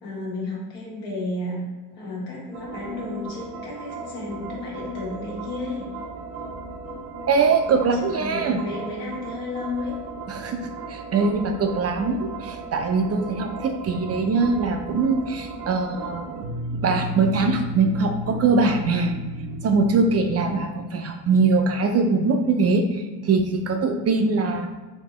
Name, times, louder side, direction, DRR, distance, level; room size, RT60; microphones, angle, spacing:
voice 1, 0.0-1.6 1.9-5.9 7.9-10.0, left 2 dB, 85° left, -4 dB, 1.4 m, -32 dB
sound 1, 2.5-20.5, right 2 dB, 80° right, 0.8 m, -35 dB
voice 2, 7.3-8.6 10.3-10.6 10.9-16.4 16.7-19.1 19.6-24.7, right 4 dB, 35° right, 5 dB, 0.4 m, -22 dB
4.2 x 2.6 x 3.0 m, 1.2 s
hypercardioid pair, 65°, 47 cm